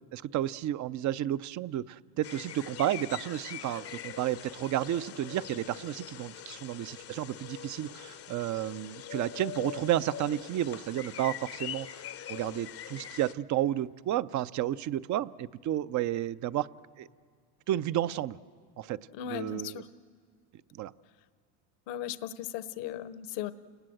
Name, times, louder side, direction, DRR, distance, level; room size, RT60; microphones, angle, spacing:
voice 1, 0.1-11.9 12.3-16.7 17.0-17.1 17.7-18.4 18.8-19.0 19.3-19.8 20.7-20.9, right 12 dB, 40° right, 17 dB, 0.5 m, -32 dB
sound 1, 2.2-13.3, left 10 dB, 35° left, 0.6 m, -43 dB
voice 2, 19.1-19.9 21.9-23.5, left 10 dB, 70° left, 14 dB, 1.0 m, -37 dB
29.0 x 19.0 x 7.8 m, 2.1 s
supercardioid pair, 105°, 44 cm